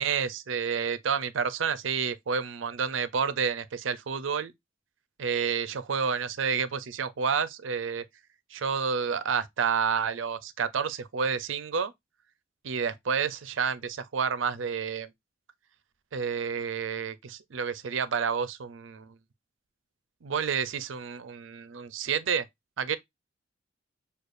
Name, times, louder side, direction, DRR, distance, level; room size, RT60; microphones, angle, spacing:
voice 1, 0.0-4.5 5.2-8.0 8.5-11.9 12.6-15.1 16.1-19.2 20.2-22.4 22.8-23.0, right 6 dB, 85° right, 0.5 m, -29 dB
6.4 x 2.3 x 2.5 m
head